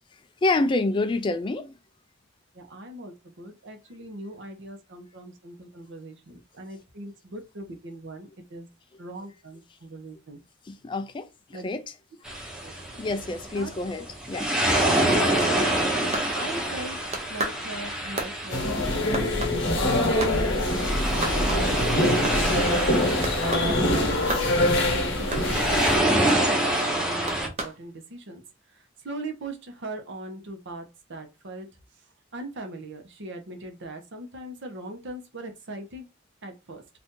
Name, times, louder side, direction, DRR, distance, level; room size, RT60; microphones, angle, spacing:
voice 1, 0.4-1.7 10.7-11.3 11.6-11.8 13.0-14.5, left 2 dB, 25° left, 0.3 m, -27 dB
voice 2, 2.5-8.7 9.0-10.4 11.5-11.7 12.6-12.7 13.0-13.7 16.3-17.0 17.3-22.6 23.6-28.4 28.8-31.7 32.3-36.0 36.4-36.8, right 2 dB, 65° right, 0.8 m, -40 dB
sound 1, 12.2-27.5, right 1 dB, 5° right, 0.8 m, -27 dB
sound 2, 15.1-16.9 17.1-20.4 20.7-20.8 21.1-21.8 22.1-22.7 23.2-23.7 24.3-24.5 25.3-25.7 26.3-26.4 27.3-27.8, right 1 dB, 35° right, 0.7 m, -33 dB
sound 3, 18.5-26.0, left 1 dB, 60° left, 0.9 m, -24 dB
2.7 x 2.5 x 3.6 m
head